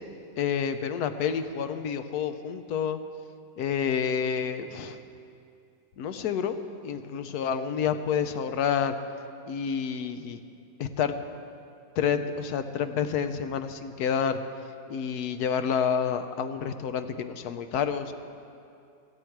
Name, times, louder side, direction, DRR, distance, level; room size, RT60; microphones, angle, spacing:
voice 1, 0.4-3.0 3.6-5.0 6.0-6.6 6.8-9.0 9.5-10.4 10.8-11.1 12.0-14.4 14.9-18.1, left 7 dB, 75° left, 9 dB, 1.3 m, -29 dB
17.5 x 13.5 x 4.7 m, 2.6 s
omnidirectional pair, 1.7 m